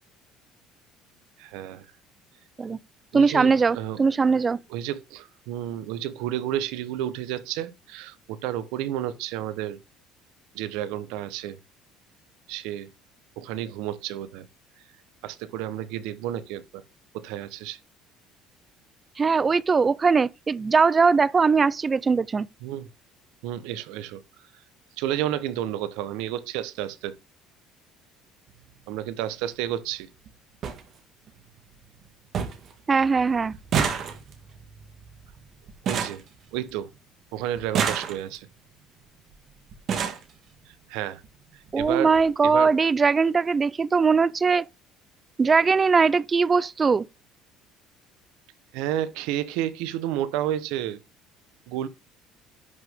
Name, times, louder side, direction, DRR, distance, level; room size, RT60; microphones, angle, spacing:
voice 1, 1.4-1.9 3.1-4.0 4.7-9.8 10.5-11.6 12.5-12.9 13.4-14.4 15.2-16.8 17.1-17.8 22.6-22.9 23.4-24.2 25.0-27.1 28.9-30.1 35.8-36.2 36.5-36.9 37.3-38.5 40.9-41.2 41.5-42.1 42.4-42.7 48.7-51.0 51.7-51.9, right 12 dB, 85° right, 0.9 m, -31 dB
voice 2, 3.1-4.6 19.2-22.5 32.9-33.5 41.7-44.7 45.4-47.1, right 5 dB, 20° right, 0.4 m, -20 dB
sound 1, 28.5-28.7 29.9-30.0 30.3-30.4 30.6-30.8 31.3-31.8 32.0-32.1 32.3-32.7 33.0-37.0 37.6-38.5 39.3-39.4 39.7-40.3 41.2-41.3 41.7-41.9 42.1-42.3, right 7 dB, 45° right, 1.7 m, -30 dB
10.5 x 6.4 x 3.6 m
cardioid pair, 140°, 0 cm